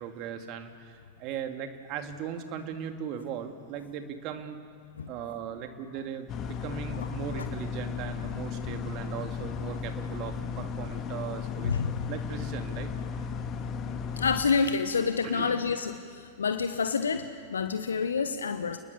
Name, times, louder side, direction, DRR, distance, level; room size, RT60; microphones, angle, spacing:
voice 1, 0.0-4.6 5.1-12.9 15.2-15.6, right 8 dB, 40° right, 6 dB, 2.3 m, -38 dB
sound 1, 6.3-14.4, left 6 dB, 30° left, 1.9 m, -35 dB
voice 2, 14.2-18.8, left 5 dB, 70° left, 9 dB, 1.0 m, -28 dB
30.0 x 20.5 x 7.1 m, 2.1 s
figure-of-eight pair, 90°, 0 cm